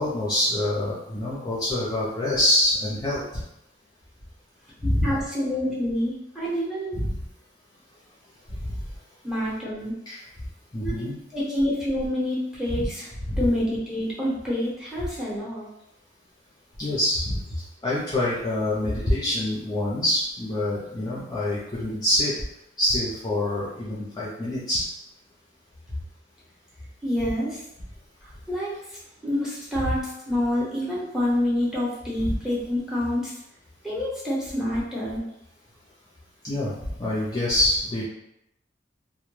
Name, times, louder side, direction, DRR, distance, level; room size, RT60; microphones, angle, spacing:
voice 1, 0.0-3.2 4.8-5.1 6.9-7.2 8.6-8.8 10.1-10.2 10.7-11.2 12.7-12.9 13.3-13.4 16.8-17.4 17.8-22.3 22.8-24.8 32.2-32.3 36.4-38.0, left 1 dB, 20° left, -7 dB, 0.5 m, -25 dB
voice 2, 4.8-7.0 9.2-9.9 10.8-11.1 11.3-13.1 13.4-15.7 18.9-19.0 27.0-27.6 28.5-33.3 33.8-35.2, left 1 dB, 5° right, -7 dB, 0.8 m, -27 dB
2.1 x 2.1 x 3.0 m, 0.80 s
head